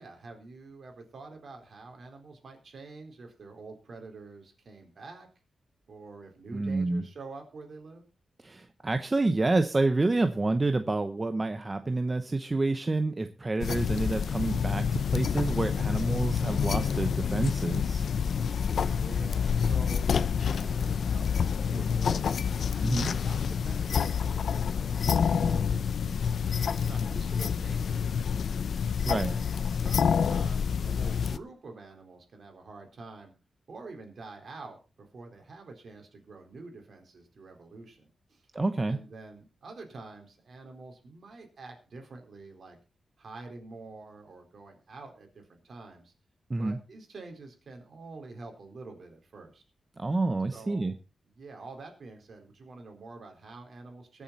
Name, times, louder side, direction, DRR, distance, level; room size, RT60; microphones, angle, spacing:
voice 1, 0.0-5.3 5.9-8.0 18.7-28.8 29.1-33.3 33.7-38.5 38.8-42.8 43.2-46.1 46.6-49.6 50.5-50.9 51.3-54.2, right 3 dB, 55° right, 3 dB, 4.2 m, -47 dB
voice 2, 6.5-7.0 8.4-18.0 22.8-23.1 29.0-29.3 38.5-39.0 46.5-46.8 50.0-50.9, right 2 dB, 20° right, 8 dB, 0.8 m, -28 dB
grabbing and letting go of a glass, 13.6-31.4, left 6 dB, 65° left, 0.6 m, -28 dB
22.0 x 7.3 x 4.2 m, 0.32 s
wide cardioid pair, 125°, 0 cm